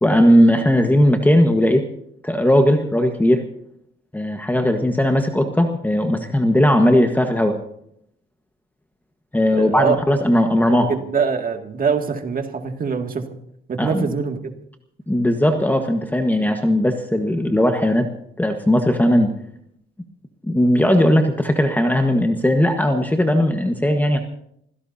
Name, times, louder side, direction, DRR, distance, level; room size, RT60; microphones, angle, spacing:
voice 1, 0.0-1.8 2.2-3.4 4.1-7.6 9.3-10.9 13.8-14.1 15.1-18.1 18.4-19.3 20.5-24.2, equal, 10° left, 5 dB, 1.4 m, -17 dB
voice 2, 9.6-10.0 10.7-13.4 13.7-14.5, right 6 dB, 45° right, 4 dB, 2.3 m, -23 dB
27.0 x 16.5 x 2.8 m, 0.73 s
cardioid pair, 90°, 20 cm